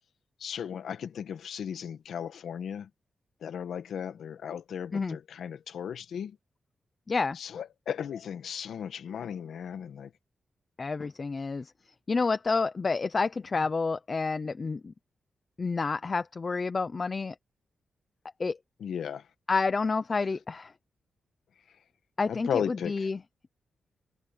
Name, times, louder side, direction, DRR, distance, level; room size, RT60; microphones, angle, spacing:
voice 1, 0.4-2.9 3.4-6.4 7.3-10.1 18.8-19.2 22.3-23.1, left 8 dB, 80° left, 1.6 m, -36 dB
voice 2, 7.1-7.4 10.8-11.7 12.1-14.9 15.6-17.4 18.4-18.6 19.5-20.7 22.2-23.2, left 4 dB, 30° left, 0.7 m, -29 dB
wide cardioid pair, 170°, 0 cm